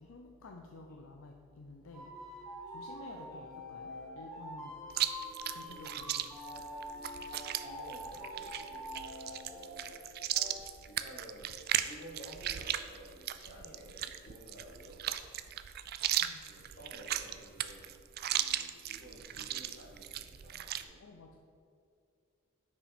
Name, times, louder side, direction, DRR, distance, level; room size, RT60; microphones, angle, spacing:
voice 1, 0.0-7.7 10.3-10.4 15.5-15.6 16.2-16.6 21.0-21.4, left 2 dB, 70° left, 2 dB, 0.6 m, -53 dB
sound 1, 1.9-10.0 10.3-10.6, left 1 dB, ahead, 2.0 m, -45 dB
Chewing mastication, 4.9-20.8, right 12 dB, 45° right, 0.3 m, -37 dB
voice 2, 7.6-8.8 9.3-9.9 10.9-11.5 11.8-15.0 16.5-17.9 18.3-21.3, equal, 45° left, -4 dB, 2.0 m, -53 dB
6.4 x 5.2 x 5.9 m, 2.4 s
head